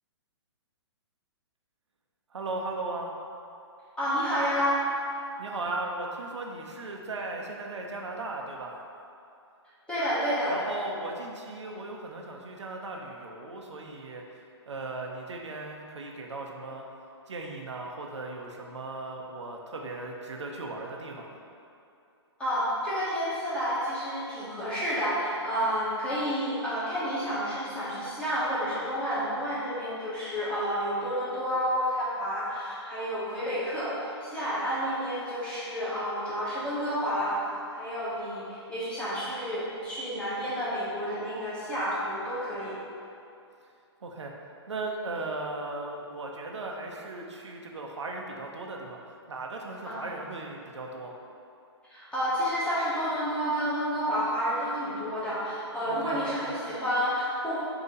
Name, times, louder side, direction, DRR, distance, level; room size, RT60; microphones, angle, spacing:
voice 1, 2.3-3.1 5.4-8.8 10.5-14.2 14.7-16.9 17.3-21.4 44.0-44.3 44.7-49.0 49.3-51.1 55.9-56.5, right 2 dB, 85° right, 0 dB, 0.6 m, -37 dB
voice 2, 4.0-4.8 9.9-10.6 22.4-37.4 37.7-42.8 49.9-50.0 51.9-57.6, equal, 5° left, -11 dB, 1.2 m, -30 dB
4.0 x 2.8 x 3.7 m, 2.6 s
hypercardioid pair, 135°, 15 cm